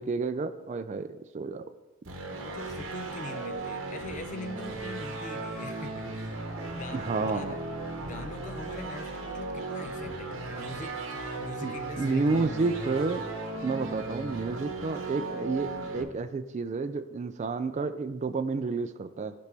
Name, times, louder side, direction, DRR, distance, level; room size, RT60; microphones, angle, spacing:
voice 1, 0.0-1.6 6.9-7.5 11.6-13.3 13.6-19.3, right 4 dB, 35° right, 10 dB, 0.4 m, -30 dB
sound 1, 2.0-16.0, right 2 dB, 70° right, 1.0 m, -36 dB
voice 2, 2.3-6.4 6.7-7.7 8.0-12.5, left 2 dB, 40° left, 8 dB, 0.5 m, -43 dB
11.0 x 5.2 x 3.4 m, 1.1 s
head